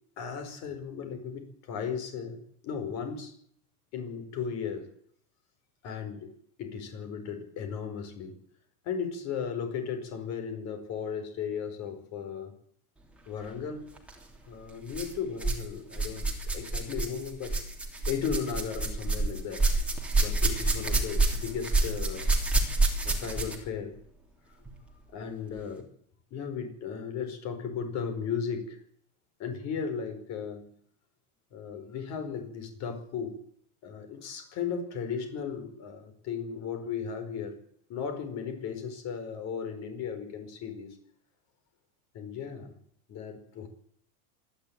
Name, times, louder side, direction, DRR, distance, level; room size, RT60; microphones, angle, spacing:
voice 1, 0.2-3.3 3.9-4.9 5.8-6.3 6.6-8.4 8.8-12.6 13.3-13.9 14.5-16.3 16.5-17.6 18.1-19.6 20.2-22.3 23.0-24.0 25.1-25.9 26.3-28.8 29.4-30.7 31.5-33.4 33.8-37.6 37.9-41.0 42.1-42.7 43.1-43.7, left 6 dB, 35° left, 7 dB, 5.2 m, -36 dB
sound 1, 14.0-14.2 14.9-15.7 15.9-23.7 24.7-24.8 25.5-25.6, right 2 dB, 5° right, 3.0 m, -28 dB
26.5 x 11.0 x 9.1 m, 0.64 s
supercardioid pair, 165°, 44 cm